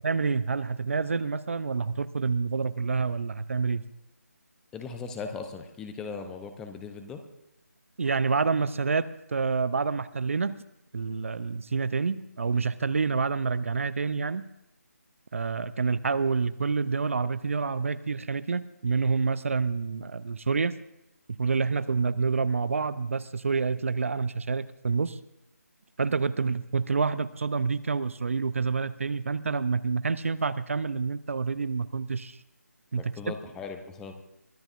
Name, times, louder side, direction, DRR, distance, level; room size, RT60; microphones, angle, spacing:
voice 1, 0.0-3.8 8.0-10.6 10.9-14.5 15.3-20.8 21.3-25.2 26.0-32.4 32.9-33.1, right 4 dB, 55° right, 16 dB, 0.6 m, -28 dB
voice 2, 4.7-7.2 32.9-34.1, left 5 dB, 5° left, 6 dB, 0.7 m, -38 dB
23.0 x 15.0 x 2.5 m, 0.90 s
figure-of-eight pair, 155°, 9 cm